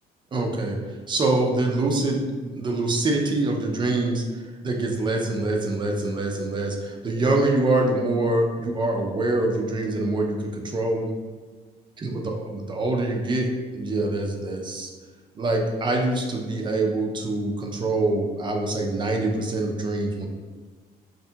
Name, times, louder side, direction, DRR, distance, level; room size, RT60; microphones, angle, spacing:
voice 1, 0.3-0.8 1.1-4.2 4.6-11.1 12.0-14.9 15.4-20.3, right 2 dB, 30° right, 1 dB, 0.4 m, -25 dB
2.7 x 2.6 x 2.2 m, 1.5 s
cardioid pair, 110°, 17 cm